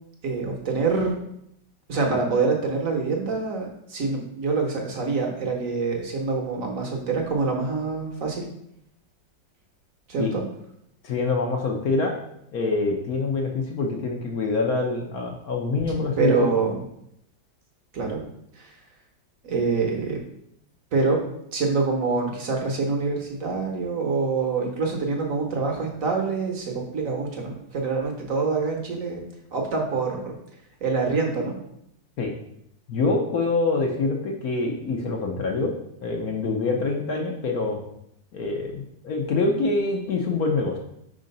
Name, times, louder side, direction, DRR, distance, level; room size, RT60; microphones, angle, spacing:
voice 1, 0.2-1.1 1.9-8.4 10.1-10.4 16.2-16.8 17.9-18.2 18.6-18.7 19.4-20.2 20.9-21.2 21.5-29.2 29.5-30.3 30.8-31.5, right 4 dB, 50° right, 1 dB, 1.2 m, -25 dB
voice 2, 11.0-12.2 12.5-16.6 32.2-32.3 32.9-35.7 36.0-37.8 38.3-40.8, left 3 dB, 60° left, 1 dB, 1.1 m, -25 dB
4.9 x 3.8 x 5.3 m, 0.75 s
omnidirectional pair, 2.0 m